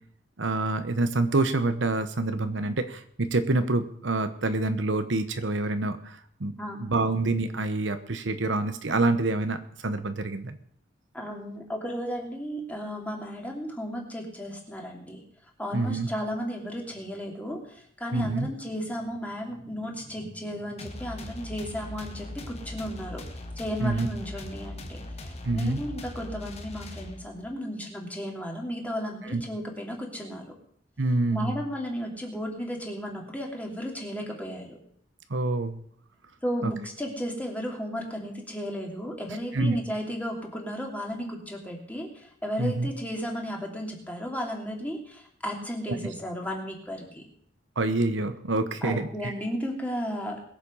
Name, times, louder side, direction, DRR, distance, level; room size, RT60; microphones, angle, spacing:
voice 1, 0.4-6.5 6.8-10.6 15.7-16.1 18.1-18.5 23.8-24.1 25.4-25.8 29.3-29.4 31.0-31.6 35.3-35.8 36.6-36.7 39.5-39.8 42.6-42.9 45.9-46.0 47.8-49.3, right 2 dB, 70° right, 9 dB, 1.0 m, -27 dB
voice 2, 6.6-6.9 11.1-15.2 15.6-23.2 23.6-30.5 31.3-34.8 36.4-47.2 48.8-50.4, equal, 10° left, 0 dB, 2.8 m, -34 dB
sound 1, 20.8-27.5, left 1 dB, 35° left, 1.6 m, -40 dB
21.5 x 7.5 x 5.6 m, 0.63 s
head